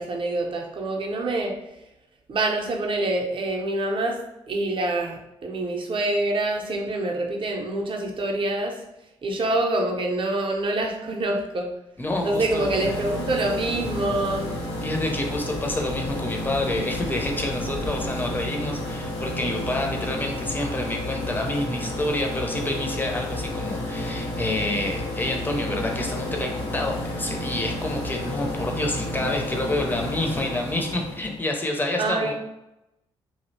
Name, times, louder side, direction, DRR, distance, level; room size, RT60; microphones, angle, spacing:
voice 1, 0.0-1.5 2.3-4.2 4.5-8.8 9.2-11.7 12.2-14.5 32.0-32.3, right 2 dB, 40° right, 1 dB, 0.6 m, -26 dB
sound 1, 12.0-31.4, left 1 dB, 80° left, 0.8 m, -31 dB
voice 2, 12.0-12.8 14.8-32.3, left 1 dB, 15° left, 1 dB, 0.6 m, -28 dB
2.7 x 2.1 x 2.6 m, 0.90 s
hypercardioid pair, 45°, 13 cm